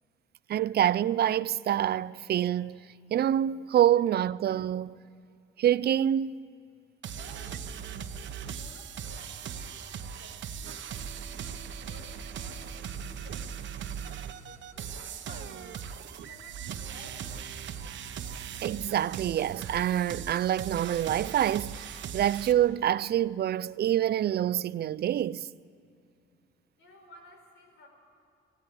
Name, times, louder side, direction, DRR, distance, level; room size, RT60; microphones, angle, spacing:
voice 1, 0.5-2.9 3.1-5.0 5.6-6.4 18.6-25.5, right 11 dB, 55° right, 0.5 m, -26 dB
sound 1, 7.0-22.5, right 7 dB, 70° right, 1.2 m, -39 dB
voice 2, 7.1-15.6 16.2-17.5 26.8-27.9, left 1 dB, 80° left, 5.1 m, -55 dB
17.0 x 16.0 x 9.8 m
cardioid pair, 90°, 20 cm